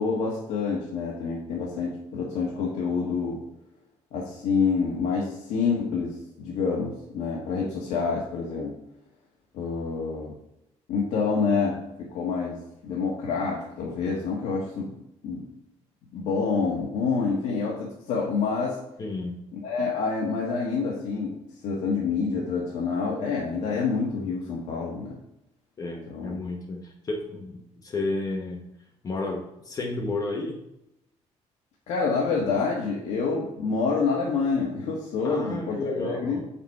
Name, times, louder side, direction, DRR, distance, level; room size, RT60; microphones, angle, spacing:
voice 1, 0.0-3.4 4.1-8.7 9.5-10.3 10.9-14.9 15.2-15.4 16.1-18.8 19.5-21.4 21.6-25.1 26.1-26.4 31.9-36.4, left 5 dB, 80° left, -4 dB, 1.5 m, -27 dB
voice 2, 19.0-19.4 25.8-28.7 29.0-30.6 35.2-36.4, left 2 dB, 30° left, 1 dB, 1.0 m, -32 dB
6.9 x 5.8 x 4.7 m, 0.85 s
cardioid pair, 155°, 12 cm